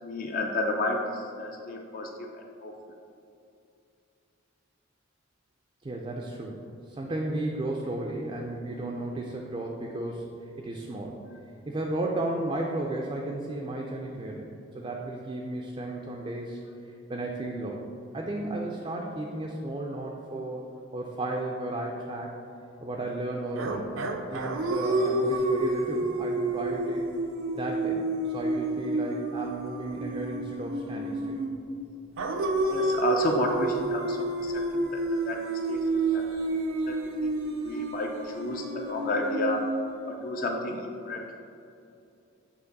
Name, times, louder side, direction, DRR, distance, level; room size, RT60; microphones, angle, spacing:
voice 1, 0.0-2.7 32.7-36.4 36.8-37.4 37.6-39.6 40.1-41.4, left 2 dB, 40° left, 1 dB, 0.4 m, -32 dB
voice 2, 5.8-10.3 10.6-11.2 11.7-14.5 14.7-16.6 17.1-17.9 18.1-20.7 20.9-22.4 22.8-23.9 24.3-27.0 27.6-31.4, right 2 dB, 25° right, 0 dB, 0.4 m, -34 dB
sound 1, 23.6-31.6 32.2-40.2, right 2 dB, 80° right, 0.5 m, -30 dB
8.1 x 2.9 x 4.0 m, 2.7 s
head